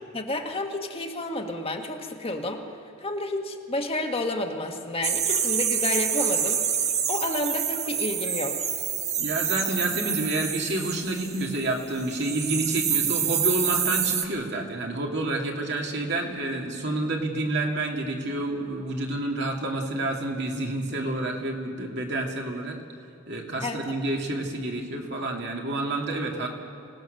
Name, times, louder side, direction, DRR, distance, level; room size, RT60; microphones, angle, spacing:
voice 1, 0.1-2.6 3.0-8.7 23.6-23.8, left 2 dB, 30° left, 3 dB, 1.4 m, -30 dB
sound 1, 5.0-11.7 12.0-14.3, right 8 dB, 35° right, 1.0 m, -27 dB
voice 2, 9.2-22.8 23.3-26.5, right 2 dB, 60° right, 0 dB, 2.4 m, -29 dB
25.5 x 18.0 x 6.6 m, 2.5 s
head